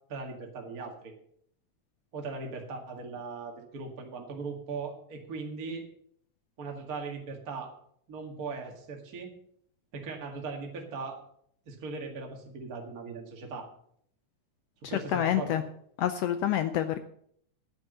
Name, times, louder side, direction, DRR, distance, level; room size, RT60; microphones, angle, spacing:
voice 1, 0.1-1.1 2.1-5.8 6.6-7.7 8.1-9.3 9.9-11.2 11.7-13.7 14.8-15.6, right 4 dB, 35° right, 1 dB, 2.1 m, -39 dB
voice 2, 15.1-15.6 16.0-17.0, left 11 dB, 80° left, 10 dB, 1.4 m, -27 dB
10.0 x 9.1 x 6.8 m, 0.67 s
omnidirectional pair, 3.4 m